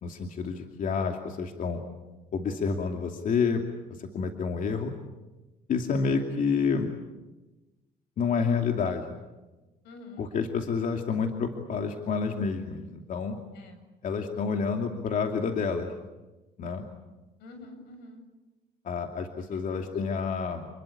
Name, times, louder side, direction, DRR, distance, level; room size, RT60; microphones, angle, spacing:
voice 1, 0.0-1.8 2.3-3.6 3.9-4.9 5.7-6.9 8.2-9.2 10.2-13.4 14.0-15.9 16.6-16.9 18.8-20.7, left 5 dB, 50° left, 3 dB, 2.6 m, -29 dB
voice 2, 9.8-10.2 13.5-13.8 17.4-18.2 19.5-20.1, left 2 dB, 85° left, 7 dB, 7.9 m, -47 dB
30.0 x 22.0 x 8.6 m, 1.1 s
cardioid pair, 110°, 17 cm